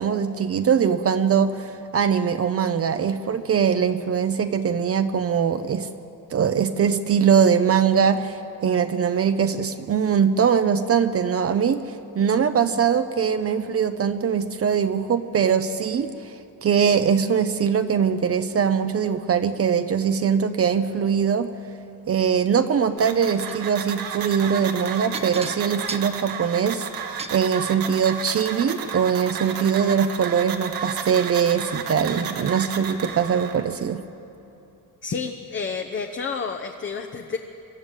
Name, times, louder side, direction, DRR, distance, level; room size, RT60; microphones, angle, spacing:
voice 1, 0.0-5.9 6.3-16.3 16.6-21.5 22.1-34.0, right 7 dB, 40° right, 10 dB, 0.7 m, -22 dB
sound 1, 23.0-33.6, right 7 dB, 85° right, 1.7 m, -33 dB
sound 2, 23.2-23.6 25.1-27.4 28.4-28.5 28.9-29.0, right 3 dB, 15° right, 1.0 m, -37 dB
voice 2, 35.0-37.4, left 5 dB, 35° left, 4 dB, 0.9 m, -30 dB
24.0 x 13.5 x 9.0 m, 2.7 s
cardioid pair, 140°, 34 cm